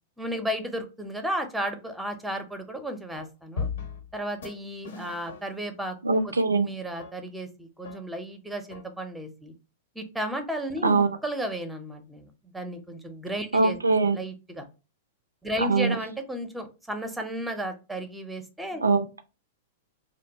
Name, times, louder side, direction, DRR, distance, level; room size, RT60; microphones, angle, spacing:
voice 1, 0.2-3.7 4.1-6.0 6.2-6.3 6.6-9.5 10.0-13.8 14.1-14.6 15.4-18.8, equal, 5° right, 0.6 m, -34 dB
sound 1, 3.1-3.2 3.6-4.2 4.4-4.5 4.8-5.7 6.1-6.2 7.0-7.1 7.8-8.0 8.7-8.8, left 5 dB, 70° left, 0.7 m, -36 dB
voice 2, 6.0-6.7 10.8-11.2 13.5-14.2 15.6-16.0 18.8-19.2, right 3 dB, 85° right, 0.4 m, -22 dB
2.8 x 2.1 x 2.7 m
figure-of-eight pair, 100°, 0 cm